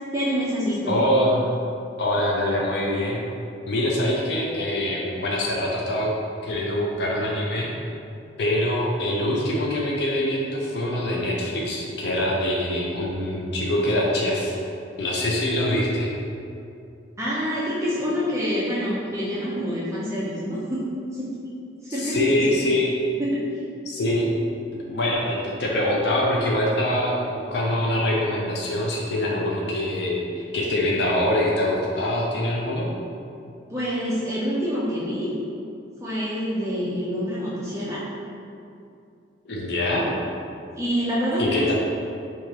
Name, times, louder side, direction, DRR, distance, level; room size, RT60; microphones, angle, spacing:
voice 1, 0.1-0.9 17.2-20.8 21.8-22.6 33.7-35.3 36.0-38.0 40.8-41.7, equal, 15° right, -8 dB, 0.5 m, -26 dB
voice 2, 0.9-1.5 2.0-3.2 3.7-6.1 6.4-7.7 8.4-14.6 15.0-16.1 21.9-23.0 23.9-24.3 24.8-32.9 39.5-40.1 41.4-41.7, left 1 dB, 60° left, -3 dB, 0.5 m, -24 dB
4.6 x 2.4 x 2.8 m, 2.5 s
head